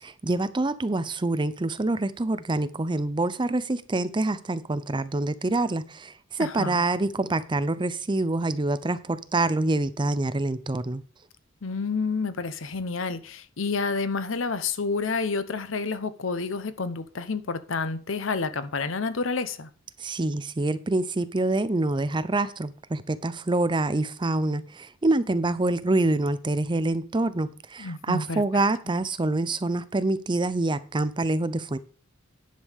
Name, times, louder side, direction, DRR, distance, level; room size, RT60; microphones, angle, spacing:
voice 1, 0.0-11.0 20.0-31.8, right 2 dB, 25° right, 0.6 m, -26 dB
voice 2, 6.4-6.8 11.6-19.7 27.8-28.4, left 4 dB, 75° left, 0.9 m, -29 dB
10.5 x 5.4 x 6.4 m
head